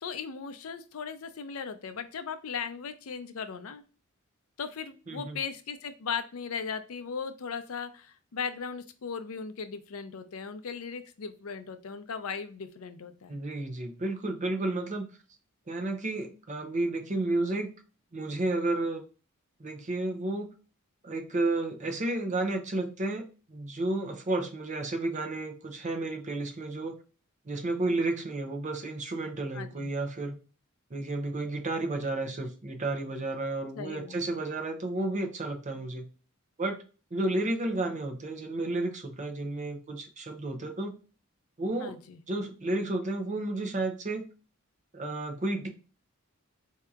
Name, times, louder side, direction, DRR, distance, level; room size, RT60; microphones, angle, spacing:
voice 1, 0.0-3.8 4.6-13.4 29.5-29.9 33.8-34.4 41.8-42.2, left 6 dB, 80° left, 10 dB, 0.5 m, -37 dB
voice 2, 5.1-5.4 13.3-15.1 15.7-17.7 18.1-19.0 19.6-20.5 21.0-27.0 27.5-30.4 30.9-36.1 36.6-36.8 37.1-41.0 41.6-41.9 42.3-44.3 44.9-45.7, right 2 dB, 35° right, 4 dB, 0.6 m, -32 dB
4.4 x 2.8 x 2.4 m, 0.35 s
head